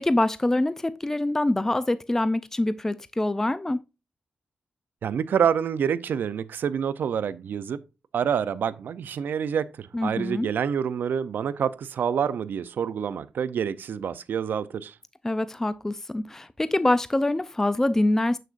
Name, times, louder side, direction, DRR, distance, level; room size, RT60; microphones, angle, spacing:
voice 1, 0.0-3.8 9.9-10.5 15.2-18.4, left 1 dB, 15° left, 0.4 m, -25 dB
voice 2, 5.0-7.8 8.1-14.9, right 7 dB, 80° right, 0.5 m, -27 dB
7.5 x 6.6 x 2.5 m
cardioid pair, 85°, 3 cm